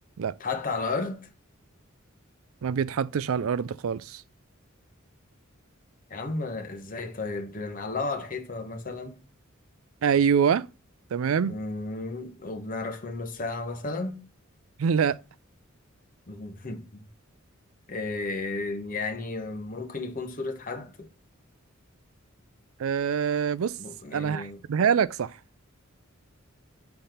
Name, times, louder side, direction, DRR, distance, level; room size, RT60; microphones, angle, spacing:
voice 1, 0.4-1.3 6.1-9.2 11.4-14.2 16.3-17.1 17.9-21.1 23.8-24.6, left 3 dB, 40° left, 1.1 m, -33 dB
voice 2, 2.6-4.2 10.0-10.7 11.1-11.5 14.8-15.2 22.8-23.8 24.1-25.4, right 7 dB, 80° right, 0.4 m, -25 dB
5.9 x 4.2 x 5.0 m
head